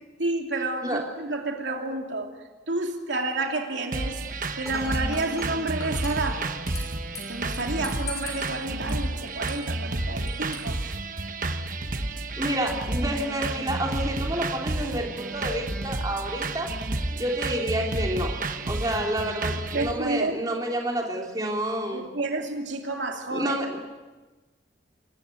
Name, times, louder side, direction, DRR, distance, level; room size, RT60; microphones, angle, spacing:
voice 1, 0.2-2.3 2.7-4.2 4.6-6.5 7.3-10.8 19.7-20.4 21.9-23.5, right 2 dB, 90° right, 2 dB, 2.8 m, -30 dB
sound 1, 3.9-19.9, right 2 dB, 45° right, 1.2 m, -31 dB
Dishes pots and pans / Glass, 4.6-11.6, left 3 dB, 20° left, 5.4 m, -43 dB
voice 2, 12.4-16.7 17.1-18.4 18.7-22.0 23.3-23.8, right 1 dB, 20° right, 0 dB, 3.1 m, -29 dB
27.5 x 15.0 x 8.4 m, 1.3 s
head